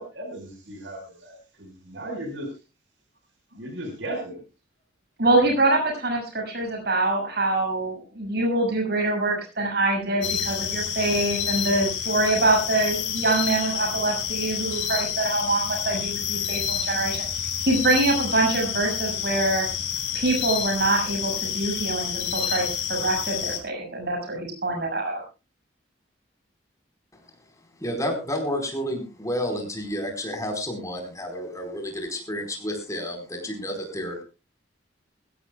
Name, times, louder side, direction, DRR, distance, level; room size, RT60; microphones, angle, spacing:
voice 1, 0.0-2.5 3.5-4.4, right 1 dB, 80° right, 3 dB, 5.1 m, -36 dB
voice 2, 5.2-17.2 17.7-19.7 20.1-25.2, right 2 dB, 60° right, 2 dB, 6.7 m, -24 dB
sound 1, 10.2-23.6, left 8 dB, 80° left, 5.1 m, -29 dB
voice 3, 27.8-34.2, equal, 20° left, 4 dB, 4.6 m, -30 dB
21.5 x 15.5 x 2.4 m, 0.30 s
head